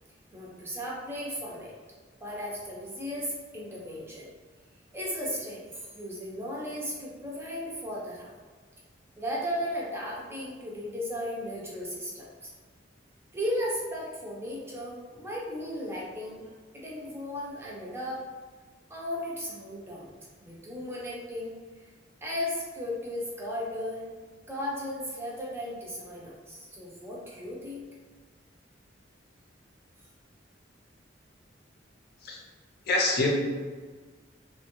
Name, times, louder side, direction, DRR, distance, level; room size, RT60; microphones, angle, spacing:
voice 1, 0.3-1.7 2.2-4.3 4.9-8.3 9.2-12.5 13.3-18.2 18.9-20.1 20.4-21.6 22.2-24.1 24.5-27.9, equal, 15° right, -4 dB, 0.6 m, -35 dB
voice 2, 32.9-33.3, left 2 dB, 55° left, -1 dB, 0.6 m, -25 dB
2.9 x 2.2 x 3.0 m, 1.4 s
head